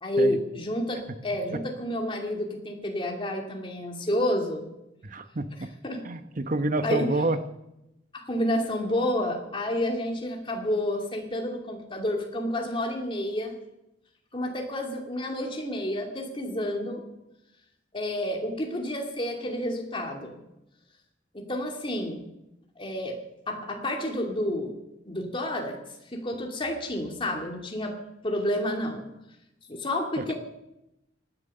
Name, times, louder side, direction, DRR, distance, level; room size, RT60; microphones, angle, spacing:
voice 1, 0.0-4.7 5.8-6.1 6.8-7.1 8.1-13.6 14.3-17.0 17.9-20.4 21.3-22.3 22.8-23.2 23.5-24.8 25.0-25.8 26.1-29.1 29.7-30.3, left 1 dB, 30° left, 1 dB, 2.5 m, -30 dB
voice 2, 5.0-5.5 6.0-7.4 30.2-30.3, right 2 dB, 45° right, 10 dB, 1.0 m, -28 dB
18.5 x 10.5 x 6.7 m, 0.91 s
head